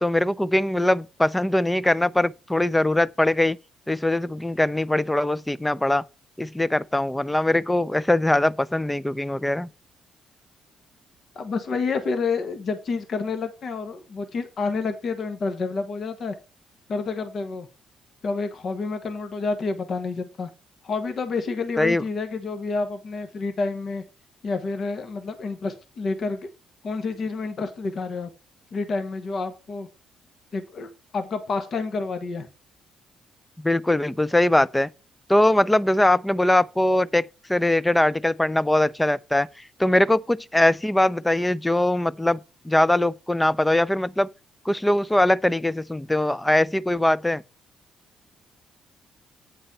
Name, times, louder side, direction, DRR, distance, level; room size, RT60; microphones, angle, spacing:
voice 1, 0.0-3.6 3.9-6.0 6.4-9.7 21.8-22.0 33.6-34.9 35.3-37.2 37.5-39.5 39.8-42.4 42.6-44.3 44.7-47.4, left 1 dB, 10° left, 0.5 m, -21 dB
voice 2, 11.3-16.4 16.9-17.7 18.2-20.5 20.8-24.0 24.4-26.5 26.8-28.3 28.7-29.9 30.5-32.5, left 4 dB, 55° left, 1.4 m, -29 dB
8.9 x 4.1 x 6.7 m
supercardioid pair, 65°, 0 cm